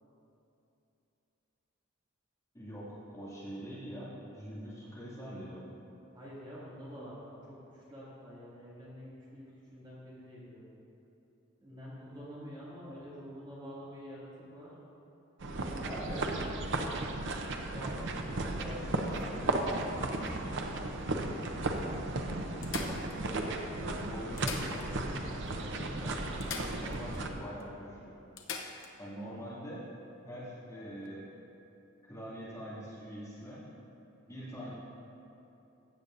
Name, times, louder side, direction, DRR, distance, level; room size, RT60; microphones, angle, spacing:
voice 1, 2.5-5.6 15.8-16.3 17.7-20.6 22.8-26.1 26.4-28.1 29.0-29.8 30.2-31.2 32.1-33.6 34.3-34.7, equal, 15° left, -10 dB, 2.4 m, -44 dB
voice 2, 6.1-10.7 11.6-14.7 15.4-16.0 20.7-21.3, equal, 25° right, -9 dB, 2.4 m, -48 dB
sound 1, 15.4-27.3, right 2 dB, 60° right, 0.7 m, -35 dB
sound 2, 19.1-20.7 21.4-21.5 21.8-21.9 22.6-23.6 24.2-25.2 25.5-25.6 26.4-27.3 27.6-27.7 28.4-28.9 30.9-31.1, left 5 dB, 65° left, 0.8 m, -44 dB
15.0 x 8.6 x 2.6 m, 2.9 s
head